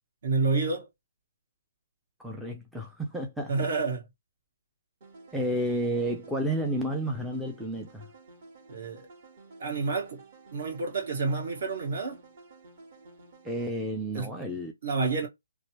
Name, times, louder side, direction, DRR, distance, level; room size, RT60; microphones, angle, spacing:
voice 1, 0.2-0.9 3.5-4.0 8.7-9.1 9.6-10.2 10.5-12.2 14.1-14.3 14.8-15.3, right 4 dB, 55° right, 1.6 m, -29 dB
voice 2, 2.2-3.5 5.3-8.1 13.4-14.7, right 1 dB, ahead, 0.4 m, -31 dB
sound 1, 5.0-13.7, right 3 dB, 40° right, 1.6 m, -52 dB
3.2 x 2.1 x 2.9 m
hypercardioid pair, 160°, 0 cm